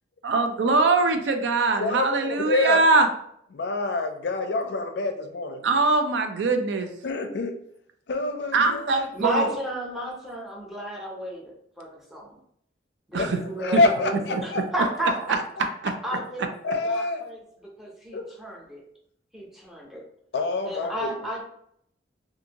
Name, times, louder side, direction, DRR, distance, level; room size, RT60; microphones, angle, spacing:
voice 1, 0.2-3.1 5.6-6.9 8.5-9.5 13.1-13.4 13.7-13.8 14.3-14.4 15.8-15.9, right 3 dB, 85° right, 0.4 m, -22 dB
voice 2, 1.8-2.8 3.5-5.6 7.0-7.5 8.1-9.1 13.2-13.3 13.6-14.6 16.6-17.2 18.1-18.2 20.3-21.1, left 3 dB, 65° left, 0.4 m, -26 dB
voice 3, 9.1-12.4 13.1-15.4 16.0-16.5 16.8-18.8 19.3-20.0 20.7-21.4, right 1 dB, ahead, 0.6 m, -33 dB
2.6 x 2.6 x 2.8 m
head